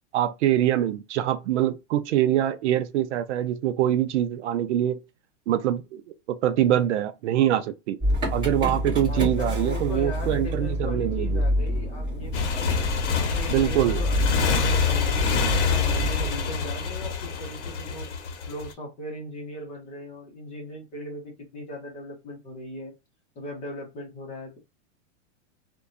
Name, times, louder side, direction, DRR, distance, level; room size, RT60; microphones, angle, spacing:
voice 1, 0.1-5.0 5.5-6.0 6.3-8.0 8.3-11.4 13.5-14.0, right 12 dB, 70° right, 0.5 m, -24 dB
Motor vehicle (road) / Engine starting, 8.0-16.3, equal, 10° right, 1.3 m, -28 dB
voice 2, 9.0-12.8 13.2-18.1 18.5-22.9 23.3-24.6, left 1 dB, 20° left, 0.7 m, -38 dB
Motorcycle, 12.3-18.7, left 5 dB, 70° left, 0.8 m, -26 dB
2.7 x 2.2 x 2.4 m
supercardioid pair, 165°, 36 cm